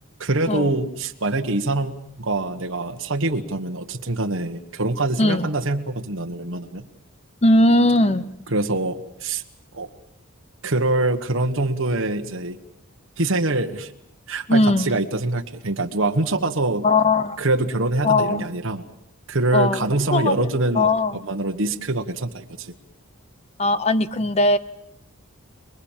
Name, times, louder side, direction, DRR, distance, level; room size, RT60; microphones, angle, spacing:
voice 1, 0.2-1.9 2.2-6.9 8.5-9.4 9.7-9.9 10.6-12.6 13.2-13.9 14.3-16.9 17.4-18.8 19.3-20.9 21.1-22.7, right 2 dB, 65° right, 4 dB, 1.4 m, -24 dB
voice 2, 7.4-8.3 14.5-14.9 16.8-17.4 18.0-18.5 19.5-19.8 20.1-20.5 20.7-21.2 23.6-24.6, left 2 dB, 30° left, 14 dB, 0.8 m, -19 dB
29.0 x 20.5 x 7.4 m, 0.82 s
head